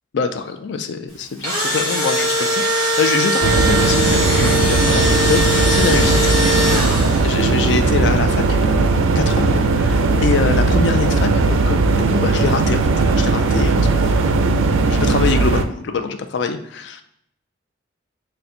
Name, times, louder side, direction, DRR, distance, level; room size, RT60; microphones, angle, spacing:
voice 1, 0.1-12.9 13.2-14.1 14.9-17.0, left 5 dB, 65° left, 8 dB, 0.4 m, -24 dB
Engine / Drill, 1.2-7.4, equal, 15° left, 1.2 m, -20 dB
sound 1, 3.4-15.6, right 3 dB, 90° right, 0.4 m, -17 dB
3.7 x 2.2 x 4.2 m, 0.73 s
head